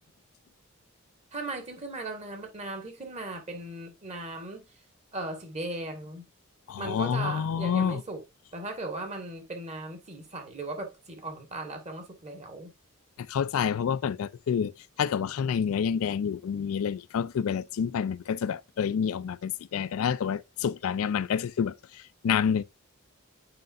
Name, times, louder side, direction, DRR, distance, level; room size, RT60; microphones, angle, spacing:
voice 1, 1.3-4.6 5.1-6.2 6.8-8.2 8.5-12.7, right 2 dB, 30° right, 1.7 m, -37 dB
voice 2, 6.7-8.0 13.3-14.7 15.0-22.6, left 7 dB, 70° left, 0.3 m, -28 dB
7.7 x 5.1 x 2.5 m
head